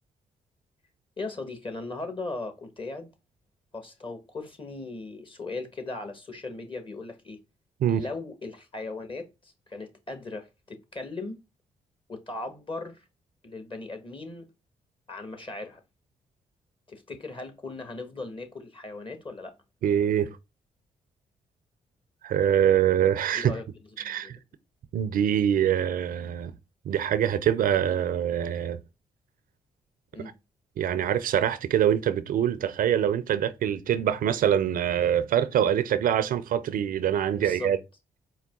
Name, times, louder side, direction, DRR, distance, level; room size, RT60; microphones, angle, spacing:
voice 1, 1.2-3.1 3.7-7.4 7.9-11.4 12.1-13.0 13.4-14.5 15.1-15.8 16.9-19.5 23.3-23.6 24.0-24.3 30.1-30.3 37.4-37.7, left 3 dB, 35° left, 1.4 m, -38 dB
voice 2, 19.8-20.4 22.2-23.5 24.0-24.4 24.9-26.5 26.8-28.8 30.8-37.8, right 9 dB, 65° right, 0.5 m, -24 dB
4.7 x 2.2 x 3.5 m
hypercardioid pair, 45°, 16 cm